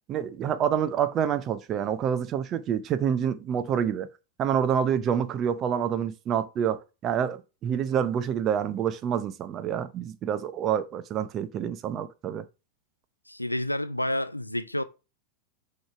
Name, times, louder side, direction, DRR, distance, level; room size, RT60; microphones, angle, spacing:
voice 1, 0.1-4.1 4.4-12.4, right 8 dB, 30° right, 0.6 m, -27 dB
voice 2, 13.3-14.8, left 1 dB, 85° left, 0.4 m, -29 dB
6.2 x 3.2 x 4.9 m
figure-of-eight pair, 90°, 0 cm